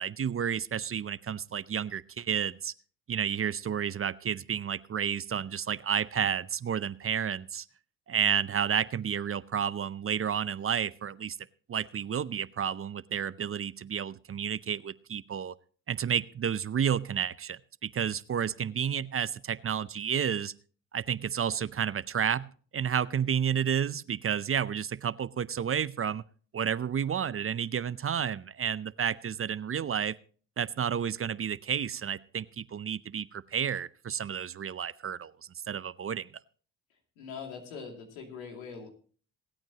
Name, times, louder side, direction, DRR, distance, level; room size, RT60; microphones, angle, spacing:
voice 1, 0.0-2.7 3.1-7.6 8.1-11.4 11.7-15.5 15.9-20.5 20.9-22.5 22.7-26.2 26.5-30.2 30.6-35.3 35.7-36.3, right 8 dB, 35° right, 18 dB, 0.6 m, -31 dB
voice 2, 37.2-38.9, left 5 dB, 90° left, 2 dB, 2.6 m, -42 dB
26.5 x 8.9 x 2.9 m, 0.42 s
hypercardioid pair, 50°, 40 cm